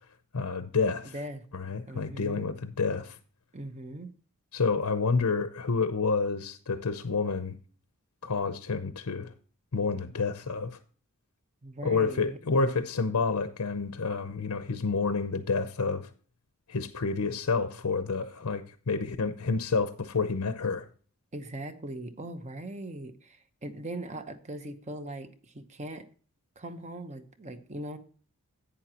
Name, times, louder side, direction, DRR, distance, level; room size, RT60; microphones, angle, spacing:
voice 1, 0.3-1.1 1.5-3.2 4.5-7.5 8.2-9.3 9.7-10.8 11.8-16.1 16.7-20.9, left 4 dB, 85° left, 0.7 m, -29 dB
voice 2, 1.1-1.4 1.9-2.5 3.5-4.1 11.6-12.4 21.3-26.1 26.6-28.0, right 1 dB, 30° right, 1.0 m, -40 dB
11.0 x 8.9 x 2.9 m
head